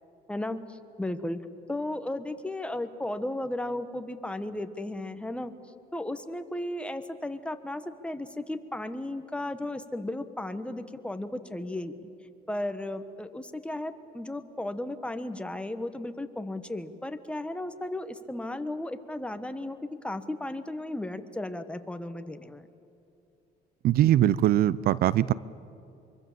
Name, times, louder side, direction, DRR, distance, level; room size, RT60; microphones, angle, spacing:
voice 1, 0.3-1.4 1.7-5.5 5.9-12.1 12.5-19.8 20.0-22.7, left 1 dB, 5° left, 9 dB, 1.3 m, -35 dB
voice 2, 23.8-25.3, right 13 dB, 65° right, 19 dB, 0.5 m, -22 dB
24.5 x 24.0 x 7.4 m, 2.7 s
cardioid pair, 110°, 17 cm